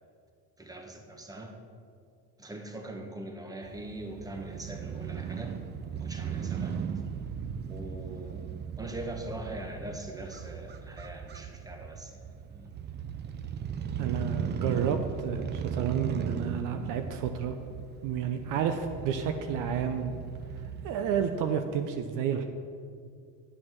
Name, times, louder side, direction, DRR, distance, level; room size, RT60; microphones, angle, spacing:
voice 1, 0.6-1.6 2.4-5.6 5.9-6.8 7.7-8.5 8.8-12.7, right 1 dB, 10° right, 3 dB, 1.3 m, -42 dB
Crow / Motorcycle, 3.6-21.5, right 7 dB, 30° right, 0.5 m, -37 dB
voice 2, 14.0-17.5 18.0-20.2 20.8-22.4, right 7 dB, 60° right, 7 dB, 0.7 m, -30 dB
9.6 x 6.1 x 6.1 m, 2.3 s
supercardioid pair, 95°, 36 cm